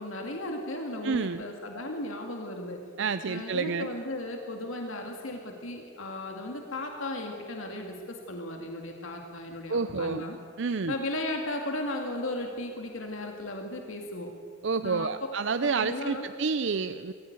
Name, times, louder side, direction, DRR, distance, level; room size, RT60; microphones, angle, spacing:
voice 1, 0.0-2.8 3.3-10.4 10.9-14.3 14.8-15.1 15.6-16.3, left 1 dB, 75° left, 2 dB, 2.2 m, -36 dB
voice 2, 1.0-1.4 3.0-3.9 9.7-10.2 10.6-10.9 14.6-17.1, right 4 dB, 60° right, 11 dB, 0.5 m, -29 dB
22.0 x 15.5 x 9.6 m, 2.3 s
head